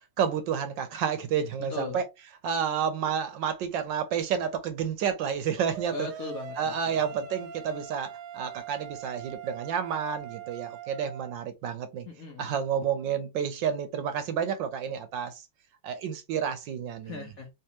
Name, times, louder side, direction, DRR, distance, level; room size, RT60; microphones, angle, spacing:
voice 1, 0.2-2.0 2.4-6.1 6.6-12.1 12.4-15.4 15.8-17.2, right 8 dB, 75° right, 1.2 m, -30 dB
voice 2, 1.7-2.0 5.9-7.0 12.1-12.6 17.0-17.5, left 4 dB, 55° left, 1.1 m, -38 dB
sound 1, 5.6-11.3, right 8 dB, 90° right, 1.5 m, -42 dB
3.4 x 3.1 x 2.9 m
omnidirectional pair, 2.2 m